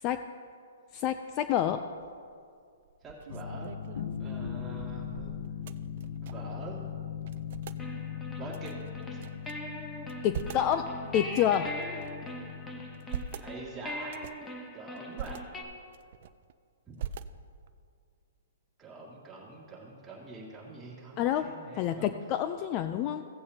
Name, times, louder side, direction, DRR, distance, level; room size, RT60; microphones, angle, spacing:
voice 1, 0.9-1.8 10.2-11.7 21.2-23.3, left 10 dB, 25° left, 9 dB, 0.3 m, -28 dB
sound 1, 1.9-2.3 2.8-6.6 6.9-7.0 7.2-7.8 8.5-9.5 10.0-10.7 11.3-12.3 12.8-13.5 14.0-14.5 15.0-15.4 15.9-16.5 17.0-17.7, right 8 dB, 45° right, 0.4 m, -42 dB
voice 2, 3.0-3.7 4.2-5.3 6.2-6.8 8.4-8.7 9.1-9.2 13.4-14.2 14.7-15.4 16.9-17.0 18.8-22.1, right 3 dB, 10° right, -6 dB, 2.2 m, -45 dB
sound 2, 3.3-13.2, left 8 dB, 70° left, 0.9 m, -40 dB
sound 3, 7.8-15.6, left 1 dB, 10° left, 0.9 m, -41 dB
16.0 x 8.4 x 2.8 m, 2.3 s
hypercardioid pair, 160°, 0 cm